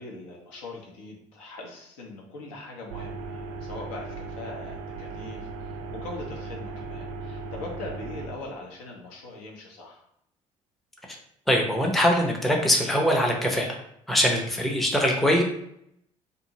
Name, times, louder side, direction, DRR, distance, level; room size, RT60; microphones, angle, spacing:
voice 1, 0.0-10.0, left 2 dB, 65° left, 1 dB, 0.6 m, -41 dB
Solder extraction fan power cycling, 2.9-8.3, right 4 dB, 65° right, 0.4 m, -37 dB
voice 2, 11.5-13.8 14.1-15.4, equal, ahead, 0 dB, 0.5 m, -22 dB
2.6 x 2.5 x 2.8 m, 0.73 s
figure-of-eight pair, 55°, 18 cm